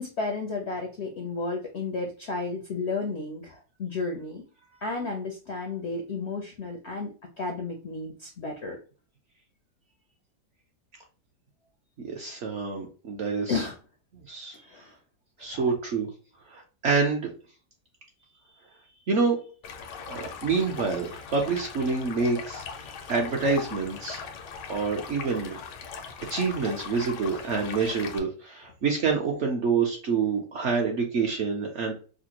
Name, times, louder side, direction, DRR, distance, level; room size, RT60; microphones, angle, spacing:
voice 1, 0.0-4.4 4.8-7.1 7.4-8.8 13.5-13.8 14.6-15.0 15.5-15.7, left 3 dB, 65° left, 2 dB, 0.6 m, -32 dB
voice 2, 12.0-13.6 14.3-14.6 15.4-16.1 16.5-17.3 19.1-19.4 20.1-24.2 24.7-25.6 26.3-31.9, right 4 dB, 60° right, 1 dB, 0.8 m, -27 dB
Stream, 19.6-28.2, left 6 dB, 85° left, 1.3 m, -40 dB
5.0 x 2.1 x 2.8 m, 0.37 s
omnidirectional pair, 1.8 m